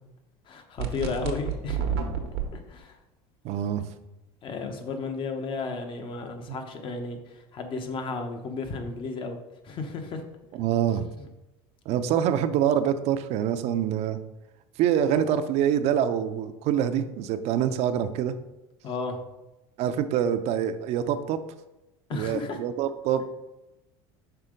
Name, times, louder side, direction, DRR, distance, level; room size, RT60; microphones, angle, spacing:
voice 1, 0.5-1.8 2.5-3.0 4.4-9.4 9.6-10.2 11.2-11.3 18.8-19.2 22.1-22.6, left 4 dB, 40° left, 6 dB, 1.0 m, -33 dB
sound 1, 0.8-2.5, right 7 dB, 90° right, 1.0 m, -29 dB
voice 2, 3.4-3.9 10.5-11.1 11.9-14.2 14.8-18.3 19.8-21.4 22.1-23.2, right 9 dB, 55° right, 10 dB, 0.6 m, -25 dB
5.7 x 3.7 x 5.0 m, 0.97 s
supercardioid pair, 110°, 13 cm